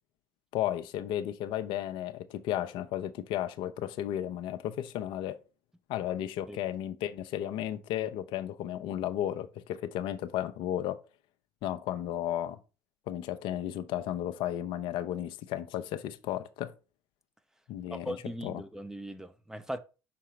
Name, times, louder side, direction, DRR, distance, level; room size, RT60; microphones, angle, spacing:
voice 1, 0.5-5.4 5.9-11.0 11.6-12.6 13.1-16.7 17.7-18.2 18.4-18.5, left 11 dB, 65° left, 0.6 m, -34 dB
voice 2, 17.9-19.8, equal, 5° right, 0.7 m, -39 dB
5.9 x 3.7 x 4.3 m
hypercardioid pair, 70°, 9 cm